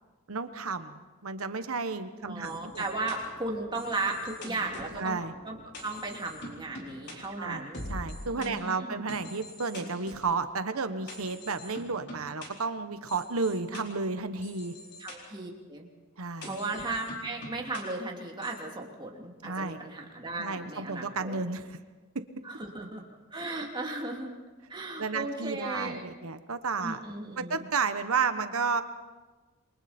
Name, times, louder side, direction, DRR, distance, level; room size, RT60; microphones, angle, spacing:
voice 1, 0.3-2.8 5.0-5.3 7.4-14.7 16.2-16.5 19.4-19.8 20.4-21.8 22.1-22.2 25.0-27.0 27.4-28.8, right 4 dB, 75° right, 10 dB, 1.2 m, -32 dB
voice 2, 2.2-5.2 5.4-5.6 5.8-7.8 8.3-9.0 15.0-15.9 16.4-21.4 22.4-23.0 23.3-24.4 24.7-26.0 26.8-27.6, right 2 dB, 20° right, 0 dB, 2.9 m, -36 dB
sound 1, 2.4-8.5 9.1-10.3 11.1-12.5 13.1-13.8 14.4-15.2 16.4-17.8 18.4-18.6, left 1 dB, 50° left, 4.4 m, -44 dB
28.5 x 23.0 x 4.4 m, 1.3 s
head